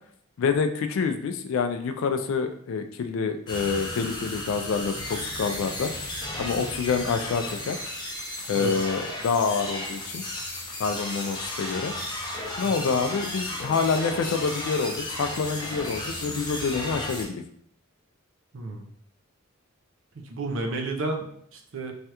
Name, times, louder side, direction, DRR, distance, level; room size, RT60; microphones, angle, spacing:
voice 1, 0.4-5.9 6.4-7.8 8.5-10.2 10.8-11.9 12.6-17.4, left 5 dB, 65° left, 8 dB, 0.3 m, -27 dB
sound 1, 3.5-17.2, left 1 dB, 20° left, 0.6 m, -34 dB
voice 2, 6.4-6.7 8.5-8.7 12.6-12.9 18.5-18.9 20.2-21.9, right 2 dB, 65° right, 3 dB, 0.5 m, -32 dB
3.2 x 2.3 x 2.8 m, 0.65 s
head